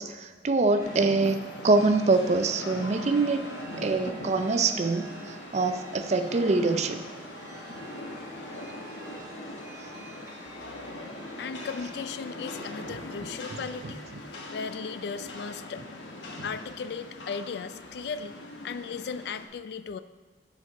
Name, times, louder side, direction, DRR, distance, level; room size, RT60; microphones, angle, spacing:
voice 1, 0.0-3.4 3.7-5.1 5.5-7.0 13.5-13.9 16.4-16.5, right 3 dB, 40° right, 9 dB, 0.4 m, -25 dB
Chime, 0.7-14.9, right 3 dB, 15° right, 1.0 m, -48 dB
Rain, 0.8-19.5, left 2 dB, 85° left, 1.0 m, -41 dB
voice 2, 11.4-14.0 14.5-15.8 16.4-18.3 18.6-20.0, left 5 dB, 60° left, 12 dB, 0.3 m, -36 dB
6.8 x 4.5 x 5.8 m, 1.4 s
head